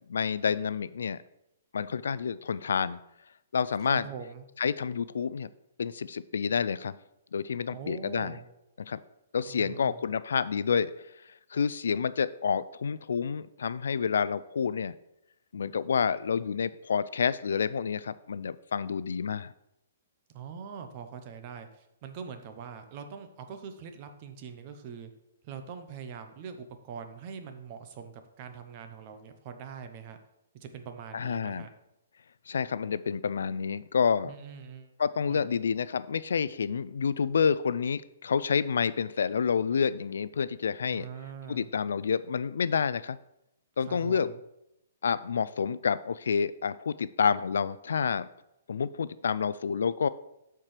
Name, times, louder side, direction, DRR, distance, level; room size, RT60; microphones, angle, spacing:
voice 1, 0.1-1.2 1.7-3.0 3.5-4.1 4.6-5.5 5.8-7.0 7.3-8.3 8.9-9.0 9.3-10.9 11.5-14.9 15.5-19.5 31.1-31.7 32.5-34.3 35.0-41.1 41.5-43.2 43.8-44.3 45.0-48.3 48.7-50.1, left 6 dB, 80° left, 16 dB, 0.3 m, -29 dB
voice 2, 3.8-4.5 7.7-8.4 9.4-10.0 20.3-25.1 25.4-30.2 30.5-31.7 34.2-34.9 35.3-35.6 40.8-41.7 43.8-44.4, right 6 dB, 30° right, 7 dB, 0.7 m, -43 dB
13.0 x 4.5 x 3.3 m, 0.86 s
hypercardioid pair, 170°, 0 cm